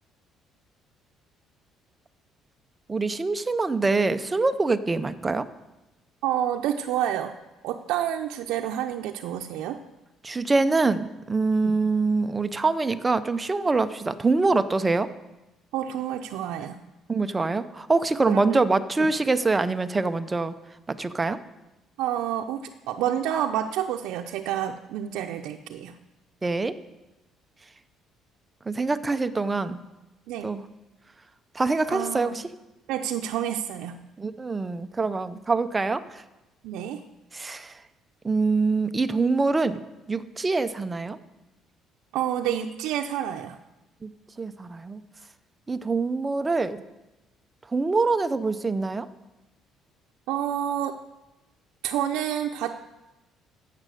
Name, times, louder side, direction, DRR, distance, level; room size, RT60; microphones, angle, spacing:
voice 1, 2.9-5.4 10.2-15.1 17.1-20.5 20.9-21.4 26.4-26.7 28.7-29.8 30.4-30.6 31.5-32.5 34.2-36.2 37.3-37.8 38.2-41.2 44.0-44.1 44.4-45.0 45.7-46.8 47.7-49.1, right 3 dB, 15° right, 11 dB, 0.5 m, -25 dB
voice 2, 6.2-7.3 7.6-9.8 11.6-11.7 15.7-16.8 18.3-18.6 22.0-25.9 30.3-30.5 31.9-32.4 32.9-34.0 36.6-37.0 42.1-43.6 50.3-51.0 51.8-52.8, right 10 dB, 90° right, 3 dB, 0.6 m, -29 dB
11.5 x 7.5 x 7.7 m, 1.0 s
cardioid pair, 170°, 0 cm